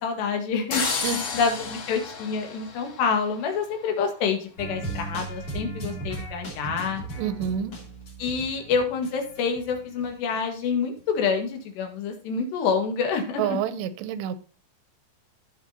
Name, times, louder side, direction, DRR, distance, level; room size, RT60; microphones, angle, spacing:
voice 1, 0.0-0.8 1.3-7.0 8.2-13.6, left 5 dB, 80° left, 4 dB, 3.8 m, -27 dB
sound 1, 0.7-3.6, left 4 dB, 65° left, 1.2 m, -31 dB
sound 2, 4.6-10.4 10.6-10.7, right 2 dB, 35° left, 3.5 m, -37 dB
voice 2, 7.2-7.7 13.4-14.4, right 8 dB, 85° right, 12 dB, 2.9 m, -28 dB
16.0 x 6.4 x 2.8 m, 0.37 s
omnidirectional pair, 4.9 m